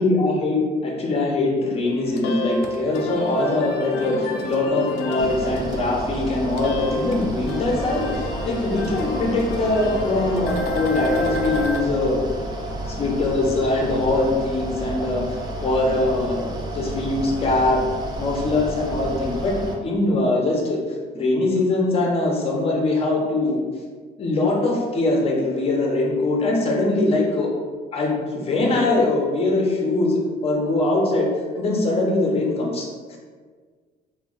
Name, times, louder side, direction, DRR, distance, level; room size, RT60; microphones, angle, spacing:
voice 1, 0.0-12.2 12.9-17.8 18.2-20.8 21.1-23.6 24.2-27.5 27.9-31.3 31.5-33.2, left 2 dB, 35° left, -1 dB, 0.7 m, -22 dB
sound 1, 1.8-11.8, left 1 dB, 80° left, 0.5 m, -30 dB
Mechanical fan, 5.2-19.8, right 1 dB, 25° right, 0.4 m, -31 dB
2.2 x 2.2 x 3.7 m, 1.5 s
cardioid pair, 110°, 17 cm